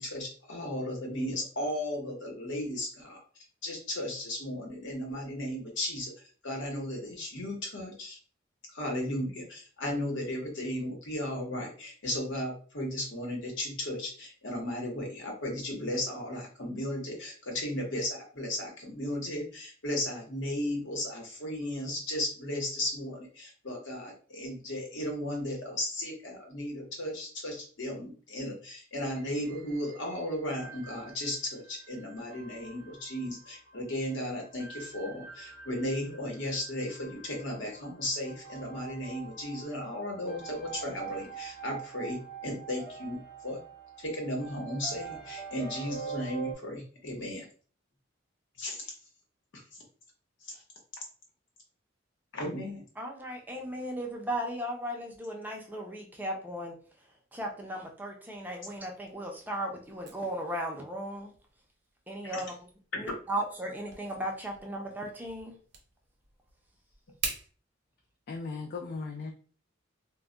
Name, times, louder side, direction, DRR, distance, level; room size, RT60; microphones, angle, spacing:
voice 1, 0.0-3.2 3.6-6.1 6.4-8.2 8.7-43.6 44.0-47.5 48.6-48.9 49.7-49.8 50.4-50.6 52.3-52.8 62.3-62.4, left 1 dB, 65° left, 0 dB, 0.9 m, -35 dB
sound 1, 29.2-46.5, right 6 dB, 25° left, 0.8 m, -45 dB
voice 2, 53.0-56.8 57.3-61.3 62.1-62.5 63.0-65.6, right 1 dB, 10° right, 1 dB, 0.5 m, -36 dB
sound 2, 58.7-67.5, right 5 dB, 60° right, 0.7 m, -45 dB
voice 3, 68.3-69.3, left 4 dB, 50° left, 2 dB, 0.3 m, -37 dB
2.2 x 2.1 x 3.7 m, 0.41 s
head